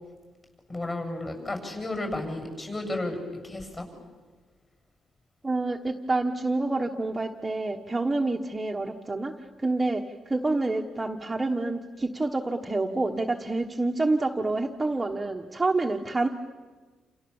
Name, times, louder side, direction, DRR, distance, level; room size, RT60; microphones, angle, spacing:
voice 1, 0.7-3.2 3.4-3.9, left 2 dB, 25° left, 5 dB, 7.6 m, -32 dB
voice 2, 5.4-16.3, right 2 dB, 15° right, 2 dB, 1.3 m, -28 dB
28.5 x 28.5 x 7.2 m, 1.4 s
cardioid pair, 135°, 0 cm